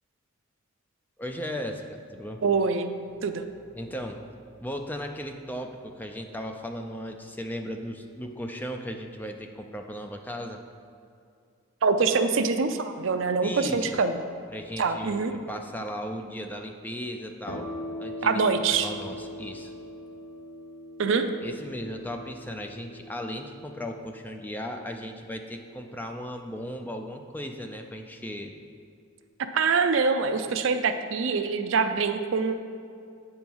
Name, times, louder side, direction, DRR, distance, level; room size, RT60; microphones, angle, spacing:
voice 1, 1.2-2.4 3.7-4.2 4.6-10.6 13.4-14.0 14.5-17.7 18.0-18.4 18.7-19.7 21.4-28.5, equal, 10° left, 4 dB, 0.4 m, -36 dB
voice 2, 2.4-2.9 3.2-3.5 11.8-14.2 14.8-15.3 18.2-18.9 21.0-21.3 29.5-32.5, right 4 dB, 60° right, 8 dB, 0.4 m, -24 dB
sound 1, 17.4-24.9, left 1 dB, 45° left, 1.4 m, -41 dB
8.6 x 4.5 x 5.4 m, 2.5 s
head